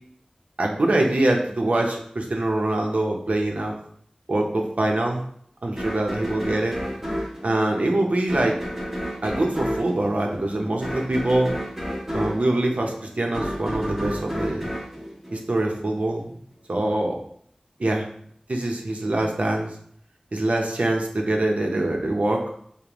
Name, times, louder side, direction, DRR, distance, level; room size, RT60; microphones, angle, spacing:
voice 1, 0.6-3.7 4.3-5.2 5.6-6.8 7.4-8.6 9.2-11.5 12.1-14.6 15.3-16.4 16.7-17.2 17.8-18.1 18.5-19.7 20.3-22.5, right 1 dB, 75° right, 1 dB, 0.7 m, -24 dB
sound 1, 5.8-16.0, equal, 10° right, 1.0 m, -31 dB
5.1 x 2.2 x 3.0 m, 0.64 s
wide cardioid pair, 50°, 2 cm